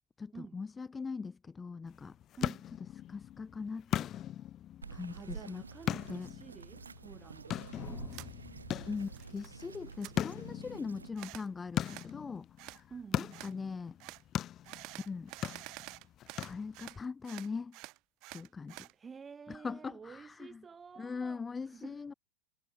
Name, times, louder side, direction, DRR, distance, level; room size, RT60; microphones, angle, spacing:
voice 1, 0.2-2.1 3.1-4.1 4.9-5.6 6.1-6.3 8.9-12.5 13.2-14.0 14.9-15.3 16.4-17.8 18.3-18.9 19.5-20.6 21.0-22.1, left 5 dB, 15° left, 2.3 m, -41 dB
sound 1, 1.9-17.0, left 11 dB, 30° left, 1.0 m, -40 dB
voice 2, 2.4-2.7 5.1-7.6 12.9-13.4 18.9-22.0, right 6 dB, 15° right, 4.5 m, -50 dB
Bird vocalization bird call bird song, 4.8-11.1, right 5 dB, 75° right, 2.8 m, -48 dB
sound 2, 8.1-8.3 8.7-9.5 9.7-10.1 11.2-11.5 11.8-12.1 12.6-12.8 13.3-13.5 14.0-14.2 14.6-17.0 17.2-18.9, right 23 dB, 40° right, 2.6 m, -48 dB
figure-of-eight pair, 90°, 0 cm